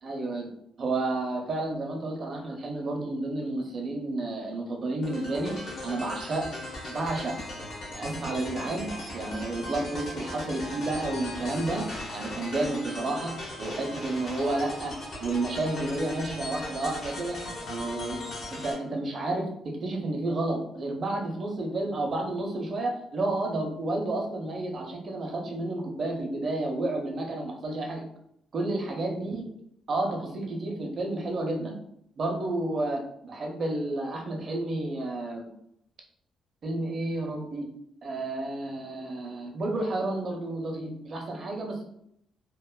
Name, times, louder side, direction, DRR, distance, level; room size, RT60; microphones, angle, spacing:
voice 1, 0.0-0.5 0.8-5.5 5.8-6.5 6.9-7.4 7.9-11.8 12.1-13.3 13.6-14.9 15.2-17.4 17.7-18.2 18.5-28.0 28.5-29.4 29.9-31.7 32.2-35.5 36.6-37.7 38.0-41.8, right 2 dB, 50° right, 1 dB, 0.6 m, -31 dB
sound 1, 5.0-18.7, left 1 dB, 60° left, 0.8 m, -38 dB
2.9 x 2.0 x 2.2 m, 0.73 s
cardioid pair, 90°, 0 cm